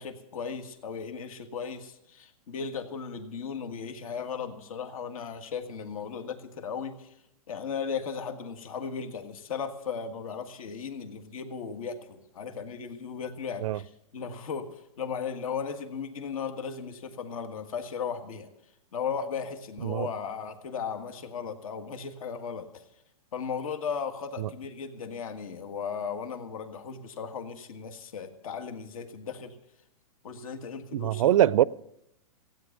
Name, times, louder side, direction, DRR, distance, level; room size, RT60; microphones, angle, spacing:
voice 1, 0.0-7.1 7.5-14.7 15.0-18.5 18.9-22.8 23.3-29.6 30.2-31.4, left 6 dB, 70° left, 1.8 m, -36 dB
voice 2, 30.9-31.6, right 12 dB, 65° right, 0.5 m, -23 dB
16.0 x 9.4 x 7.2 m
hypercardioid pair, 150°, 19 cm